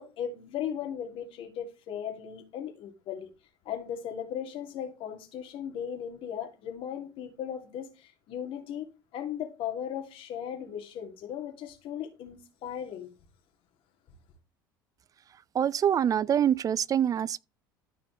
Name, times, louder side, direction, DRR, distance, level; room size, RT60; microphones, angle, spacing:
voice 1, 0.0-3.3 3.6-8.9 9.1-13.1, left 9 dB, 55° left, 2.9 m, -37 dB
voice 2, 15.5-17.4, right 9 dB, 30° right, 0.4 m, -25 dB
14.0 x 5.1 x 3.3 m
hypercardioid pair, 70°, 11 cm